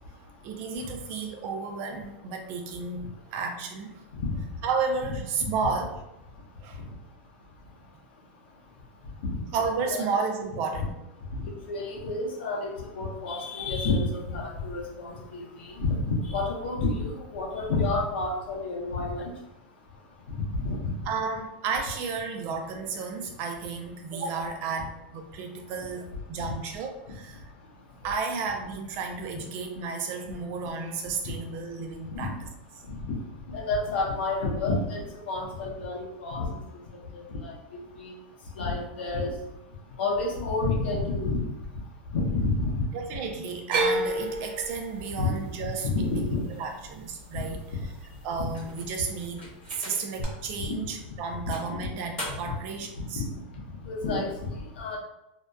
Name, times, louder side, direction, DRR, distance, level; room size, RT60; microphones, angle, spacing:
voice 1, 0.4-4.0 4.6-6.0 6.6-6.8 9.5-11.0 21.1-27.4 28.0-32.3 42.9-47.6 48.2-53.3, right 4 dB, 35° right, 4 dB, 0.4 m, -32 dB
voice 2, 4.1-4.4 5.4-5.5 9.2-9.5 9.9-10.0 11.3-19.3 20.3-21.1 26.4-26.5 31.2-31.3 32.1-32.4 32.8-33.2 33.5-38.2 38.5-39.4 40.0-41.5 42.1-42.9 45.1-45.3 45.6-46.5 47.3-47.8 48.4-48.5 50.6-51.2 51.4-51.5 52.4-52.6 53.0-55.0, left 3 dB, 75° left, -1 dB, 0.7 m, -30 dB
sound 1, 43.7-47.9 48.2-48.9 50.2-50.3, right 2 dB, 80° right, 0.8 m, -31 dB
sound 2, 48.5-50.3 50.8-50.9 51.5-52.7, left 1 dB, 20° left, 1.0 m, -41 dB
2.7 x 2.1 x 2.2 m, 0.91 s
supercardioid pair, 165°, 6 cm